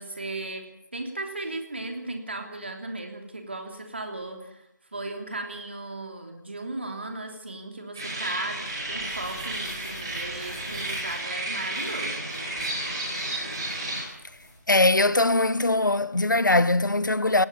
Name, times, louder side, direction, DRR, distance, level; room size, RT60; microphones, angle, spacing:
voice 1, 0.0-4.7 4.9-12.3, right 2 dB, 35° right, 3.2 m, -36 dB
sound 1, 7.9-14.0, right 2 dB, 15° right, 5.0 m, -32 dB
sound 2, 8.5-15.5, left 1 dB, 5° left, 7.8 m, -48 dB
voice 2, 14.7-17.5, left 2 dB, 75° left, 1.1 m, -21 dB
18.0 x 17.5 x 8.6 m
figure-of-eight pair, 175°, 10 cm